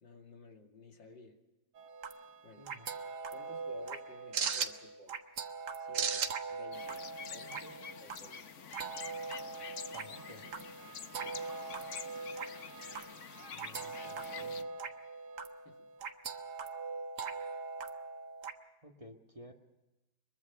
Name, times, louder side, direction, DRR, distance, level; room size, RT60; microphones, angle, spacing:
voice 1, 0.0-1.4 2.4-2.7 3.3-5.2 5.8-7.0 7.3-8.5 11.1-11.4 15.6-15.9, left 2 dB, 75° left, 3 dB, 3.1 m, -56 dB
sound 1, 1.8-18.5, right 5 dB, 65° right, 1.9 m, -40 dB
voice 2, 2.6-2.9 9.9-10.5 13.5-14.7 18.8-19.5, equal, 20° right, 3 dB, 1.7 m, -54 dB
sound 2, 6.7-14.6, left 7 dB, 50° left, 1.1 m, -47 dB
23.5 x 23.0 x 5.9 m, 1.0 s
omnidirectional pair, 2.0 m